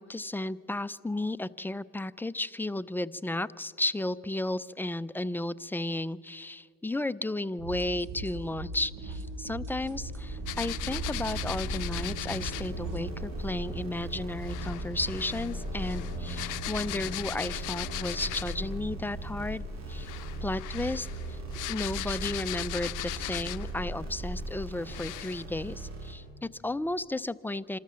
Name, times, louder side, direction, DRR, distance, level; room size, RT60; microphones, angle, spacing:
voice 1, 0.0-20.1 20.4-21.4 21.7-27.8, left 2 dB, 5° left, 14 dB, 0.4 m, -34 dB
sound 1, 7.6-13.1, right 2 dB, 85° right, 2.4 m, -39 dB
sound 2, 9.6-26.2, right 1 dB, 60° right, 3.7 m, -38 dB
sound 3, 10.5-12.7 14.4-18.7 19.9-23.8 24.4-24.5 24.9-25.4, left 19 dB, 85° left, 0.5 m, -38 dB
26.5 x 13.0 x 7.4 m, 2.3 s
cardioid pair, 90°, 30 cm